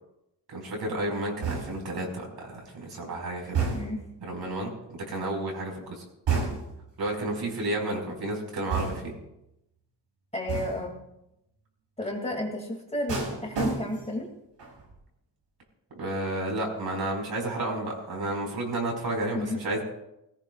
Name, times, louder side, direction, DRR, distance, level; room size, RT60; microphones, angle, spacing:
voice 1, 0.5-3.7 4.2-6.0 7.0-9.1 16.0-19.8, right 1 dB, 60° right, 0 dB, 5.2 m, -31 dB
sound 1, 1.4-2.0 3.5-4.1 6.3-6.9 8.7-9.3 10.5-10.9 13.1-14.2 14.6-15.0, right 5 dB, 85° right, 5.6 m, -30 dB
voice 2, 10.3-11.0 12.0-14.3 19.3-19.6, left 1 dB, 15° left, 0 dB, 2.5 m, -32 dB
20.5 x 18.0 x 2.5 m, 0.86 s
wide cardioid pair, 135°, 43 cm